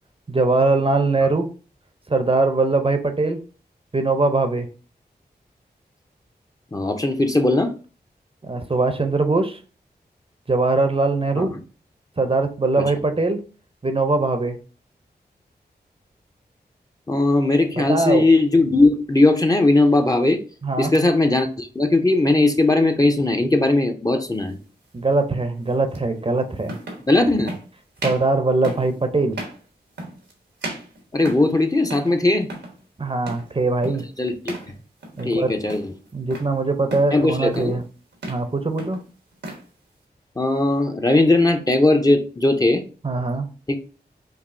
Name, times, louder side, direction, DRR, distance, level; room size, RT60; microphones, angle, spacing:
voice 1, 0.3-1.5 2.1-3.4 3.9-4.7 8.4-9.6 10.5-11.5 12.2-13.4 13.8-14.6 17.8-18.3 20.6-20.9 24.9-26.7 28.0-29.4 33.0-34.1 35.2-35.5 36.1-37.8 38.3-39.0 43.0-43.5, right 3 dB, 30° right, 7 dB, 0.6 m, -21 dB
voice 2, 6.7-7.7 11.4-11.5 12.8-12.9 17.1-20.4 20.8-24.6 27.1-27.5 31.1-32.5 34.2-34.5 35.2-35.9 37.1-37.8 40.4-42.8 43.7-43.8, left 2 dB, 20° left, 4 dB, 0.6 m, -18 dB
sound 1, 24.4-24.6 25.9-26.0 26.6-27.1 27.5-27.7 28.0-28.3 28.6-28.9 29.3-29.6 30.0-30.3 30.6-31.6 31.9-32.2 32.4-32.8 33.3-33.5 33.8-34.1 34.4-34.7 35.0-35.4 35.7-36.5 36.9-37.2 37.5-37.8 38.1-38.5 38.8-39.7, right 1 dB, 90° right, 1.0 m, -34 dB
4.7 x 2.6 x 2.6 m, 0.37 s
cardioid pair, 40°, 18 cm